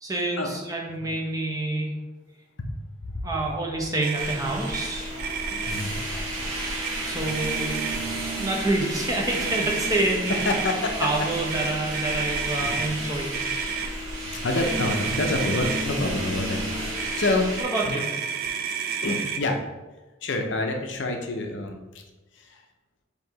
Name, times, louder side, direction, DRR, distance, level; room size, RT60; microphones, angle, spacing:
voice 1, 0.0-2.0 3.2-5.1 7.0-7.8 8.4-10.4 11.0-13.4 17.7-18.1, right 2 dB, 15° right, -1 dB, 0.7 m, -27 dB
voice 2, 2.6-3.3 5.5-6.6 7.2-7.3 8.0-8.2 10.3-11.1 11.5-11.7 12.6-12.8 14.2-17.5 17.8-18.0 19.0-19.6 20.2-22.0 22.3-22.6, left 2 dB, 60° left, 4 dB, 0.6 m, -28 dB
Motor vehicle (road), 4.0-4.4 4.7-4.9 5.2-5.8 6.6-6.9 7.2-8.2 9.3-10.7 11.5-12.9 13.3-13.9 14.6-15.9 16.9-19.4, right 7 dB, 50° right, 0.3 m, -31 dB
sound 1, 4.2-17.6, right 1 dB, 80° right, 0.9 m, -32 dB
4.5 x 2.8 x 4.0 m, 1.1 s
head